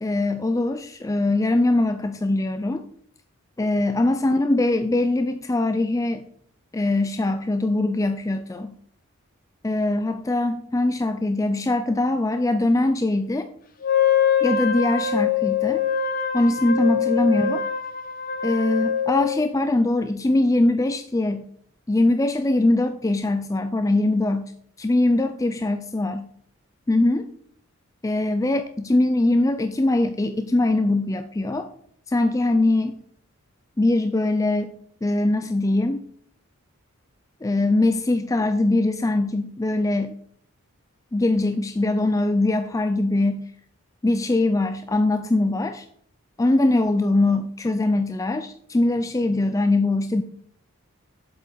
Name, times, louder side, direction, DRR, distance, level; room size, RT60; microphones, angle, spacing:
voice 1, 0.0-2.8 3.6-6.3 6.7-8.7 9.6-13.5 14.4-15.8 16.3-17.6 18.4-21.5 21.9-24.5 24.8-26.3 26.9-27.3 28.0-31.7 32.1-33.0 33.8-34.7 35.0-36.0 37.4-40.1 41.1-43.4 44.0-45.9 46.4-50.2, left 2 dB, 15° left, 8 dB, 0.3 m, -22 dB
Wind instrument woodwind instrument, 13.8-19.4, left 7 dB, 40° left, 0.8 m, -23 dB
7.7 x 7.4 x 3.9 m, 0.64 s
head